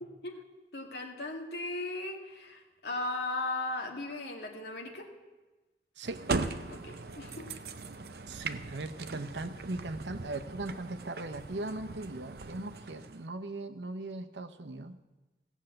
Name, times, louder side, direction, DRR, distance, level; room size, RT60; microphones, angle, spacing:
voice 1, 0.7-5.1 6.7-7.5, left 2 dB, 70° left, 1 dB, 2.1 m, -37 dB
sound 1, 6.0-13.3, right 3 dB, 60° right, 0.7 m, -39 dB
voice 2, 8.3-15.0, right 2 dB, 90° right, 9 dB, 0.9 m, -39 dB
16.5 x 7.2 x 7.8 m, 1.1 s
head